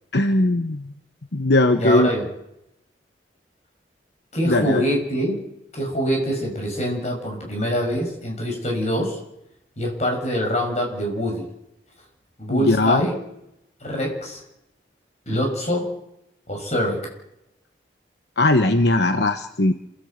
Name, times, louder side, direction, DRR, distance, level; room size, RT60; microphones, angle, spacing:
voice 1, 0.1-0.8 1.3-2.1 4.4-4.8 12.5-13.0 18.4-19.7, left 2 dB, 65° left, 8 dB, 1.0 m, -19 dB
voice 2, 1.7-2.3 4.3-5.4 5.7-9.2 9.8-11.4 12.4-13.2 13.8-14.4 15.3-15.9 16.5-17.1, equal, 40° left, 1 dB, 6.7 m, -24 dB
27.5 x 14.0 x 8.1 m, 0.85 s
head